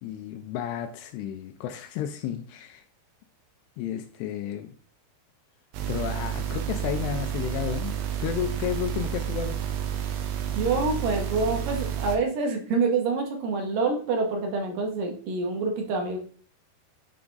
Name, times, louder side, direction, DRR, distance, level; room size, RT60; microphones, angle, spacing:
voice 1, 0.0-2.8 3.8-4.7 5.9-9.6, left 10 dB, 85° left, 6 dB, 2.6 m, -32 dB
sound 1, 5.7-12.2, right 9 dB, 85° right, 3.1 m, -30 dB
voice 2, 10.5-16.2, right 4 dB, 65° right, 3 dB, 2.4 m, -26 dB
9.5 x 3.5 x 3.8 m, 0.43 s
omnidirectional pair, 4.9 m